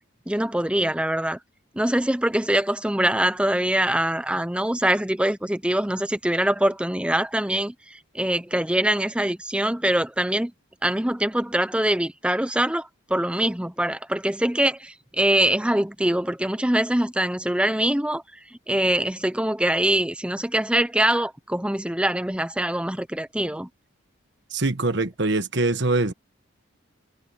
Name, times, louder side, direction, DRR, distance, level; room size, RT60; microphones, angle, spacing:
voice 1, 0.3-1.4 1.7-10.5 10.8-18.2 18.7-23.7, right 1 dB, 5° right, 0.6 m, -23 dB
voice 2, 24.5-26.1, right 2 dB, 55° right, 1.3 m, -23 dB
head